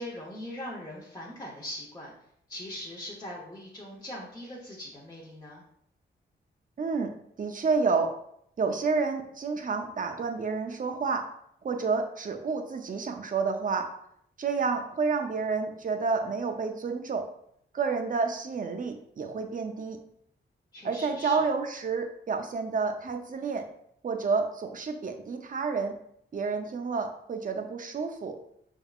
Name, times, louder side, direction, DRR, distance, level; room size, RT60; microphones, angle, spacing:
voice 1, 0.0-2.1 2.5-5.6 20.7-21.5, left 1 dB, 20° left, -6 dB, 0.9 m, -41 dB
voice 2, 6.8-8.1 8.6-11.3 11.6-13.9 14.4-17.2 17.7-20.0 20.8-23.6 24.0-25.9 26.3-28.4, right 4 dB, 45° right, 5 dB, 0.6 m, -29 dB
5.5 x 3.6 x 2.4 m, 0.71 s
wide cardioid pair, 115°, 20 cm